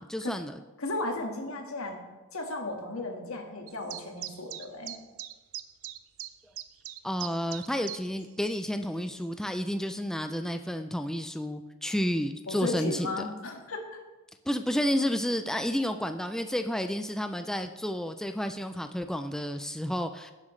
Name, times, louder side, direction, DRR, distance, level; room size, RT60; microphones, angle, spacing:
voice 1, 0.0-0.6 7.0-13.1 14.5-20.3, equal, 5° left, 7 dB, 0.3 m, -31 dB
voice 2, 0.8-2.0 2.3-4.9 12.5-14.0, left 2 dB, 80° left, 2 dB, 1.7 m, -35 dB
sound 1, 3.7-8.2 8.5-8.6 9.2-9.3, right 13 dB, 75° right, 0.5 m, -40 dB
17.0 x 7.5 x 3.2 m, 1.2 s
head